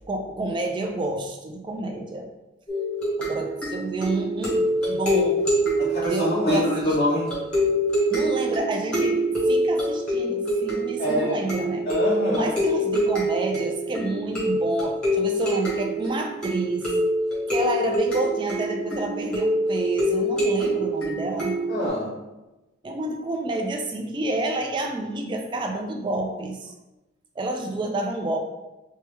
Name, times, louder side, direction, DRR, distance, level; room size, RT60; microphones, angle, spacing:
voice 1, 0.1-2.3 3.2-5.5 6.0-7.0 8.1-11.9 12.3-16.9 17.5-21.6 22.8-26.7 27.4-28.4, right 2 dB, 25° right, 3 dB, 0.3 m, -29 dB
sound 1, 2.7-21.9, equal, 5° left, 0.9 m, -25 dB
voice 2, 5.8-7.3 11.0-11.4 11.9-12.5 21.7-22.1, equal, 35° left, -6 dB, 0.5 m, -25 dB
3.0 x 2.2 x 3.0 m, 1.0 s
head